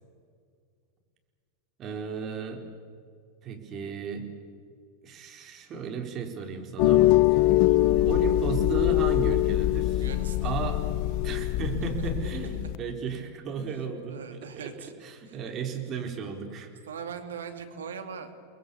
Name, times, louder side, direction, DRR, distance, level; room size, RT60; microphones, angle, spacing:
voice 1, 1.8-2.6 3.4-4.3 5.0-7.5 8.0-10.1 10.4-10.8 11.2-14.7 15.0-16.7, right 5 dB, 35° right, 4 dB, 4.3 m, -34 dB
sound 1, 6.8-12.8, left 16 dB, 55° left, 0.8 m, -23 dB
voice 2, 10.0-10.7 14.1-14.9 15.3-15.4 16.9-18.3, right 6 dB, 75° right, 7 dB, 2.7 m, -40 dB
30.0 x 21.0 x 7.2 m, 2.2 s
hypercardioid pair, 90°, 0 cm